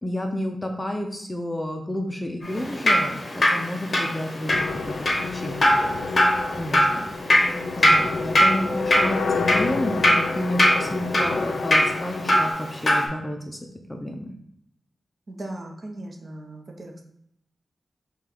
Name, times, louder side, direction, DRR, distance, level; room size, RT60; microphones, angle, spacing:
voice 1, 0.0-6.2 6.5-7.1 7.3-7.4 7.8-13.6 13.9-14.3, left 1 dB, 15° left, 3 dB, 0.4 m, -31 dB
Drip, 2.4-13.1, left 1 dB, 35° left, 0.8 m, -22 dB
sound 1, 4.5-12.5, left 4 dB, 90° left, 0.4 m, -30 dB
voice 2, 6.5-7.0 7.4-8.1 15.3-17.0, right 1 dB, 45° right, 2 dB, 0.7 m, -39 dB
5.8 x 2.3 x 3.4 m, 0.71 s
wide cardioid pair, 155°, 0 cm